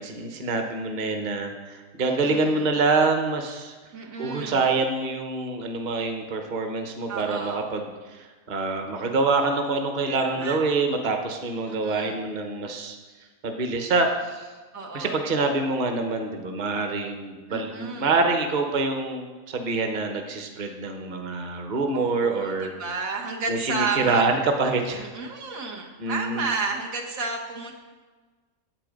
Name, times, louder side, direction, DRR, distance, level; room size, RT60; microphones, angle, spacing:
voice 1, 0.0-3.7 4.2-13.0 13.4-14.5 14.9-22.7 23.5-25.0 26.0-26.5, right 3 dB, 35° right, 4 dB, 1.0 m, -26 dB
voice 2, 2.1-2.7 3.9-4.7 7.1-7.7 10.1-10.6 11.7-12.2 14.7-15.2 17.5-18.2 21.9-24.2 24.9-27.7, right 4 dB, 85° right, 0 dB, 1.7 m, -32 dB
8.9 x 8.3 x 5.2 m, 1.3 s
omnidirectional pair, 1.4 m